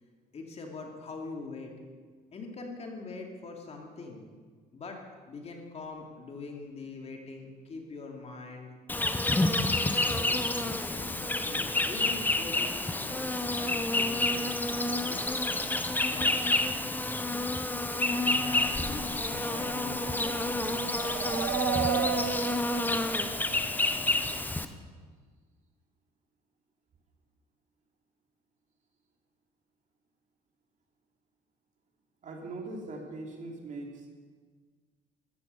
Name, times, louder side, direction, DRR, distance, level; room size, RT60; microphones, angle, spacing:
voice 1, 0.3-1.7 2.3-4.2 4.7-5.0 5.3-8.7 10.0-14.8 15.0-15.5 16.1-16.9 18.1-21.3, left 3 dB, 40° left, 2 dB, 2.8 m, -43 dB
Insect, 8.9-24.6, left 2 dB, 10° left, 1.0 m, -29 dB
sound 1, 18.6-24.4, right 17 dB, 80° right, 0.4 m, -36 dB
voice 2, 32.2-34.1, right 2 dB, 45° right, 1 dB, 3.3 m, -40 dB
15.0 x 12.5 x 6.9 m, 1.5 s
cardioid pair, 110°, 17 cm